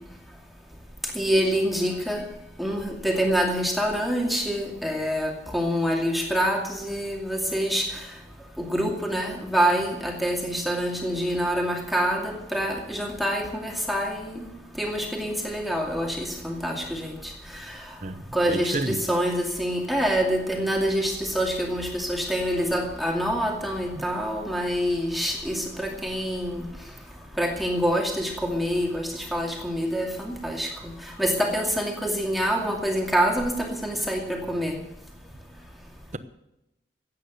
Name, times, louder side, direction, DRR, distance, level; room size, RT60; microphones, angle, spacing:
voice 1, 1.1-2.2 2.6-7.9 8.6-14.5 14.8-17.1 18.3-26.7 27.4-30.7 31.2-34.7, equal, ahead, 0 dB, 2.3 m, -26 dB
voice 2, 18.0-19.0 24.0-24.1, right 2 dB, 40° right, 11 dB, 0.9 m, -31 dB
15.5 x 9.3 x 7.9 m, 0.89 s
head